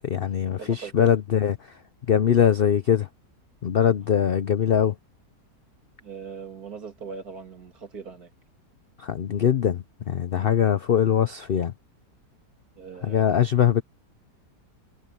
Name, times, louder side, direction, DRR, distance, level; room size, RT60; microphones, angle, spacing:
voice 1, 0.0-1.6 2.1-3.1 3.6-4.9 9.0-11.7 13.0-13.8, left 9 dB, 70° left, 0.5 m, -22 dB
voice 2, 0.6-1.2 6.0-8.3 10.4-10.6 12.8-13.4, right 5 dB, 60° right, 2.9 m, -40 dB
omnidirectional pair, 1.8 m